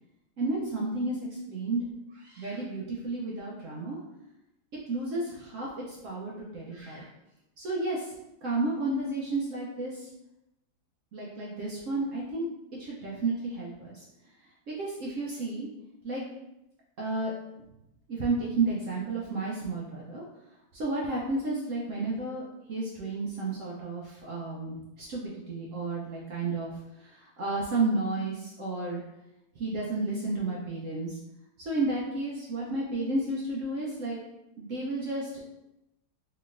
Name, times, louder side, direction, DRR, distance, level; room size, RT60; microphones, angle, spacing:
voice 1, 0.4-1.2 1.5-1.8 2.1-4.0 4.9-7.1 7.6-8.1 8.4-10.1 11.1-12.5 12.8-14.0 14.7-15.7 16.0-16.2 17.0-17.3 18.1-20.2 20.7-26.7 27.0-29.0 29.6-31.2 31.6-34.2 34.6-35.3, right 2 dB, 80° right, -4 dB, 0.7 m, -32 dB
3.8 x 3.2 x 2.5 m, 0.89 s
omnidirectional pair, 2.1 m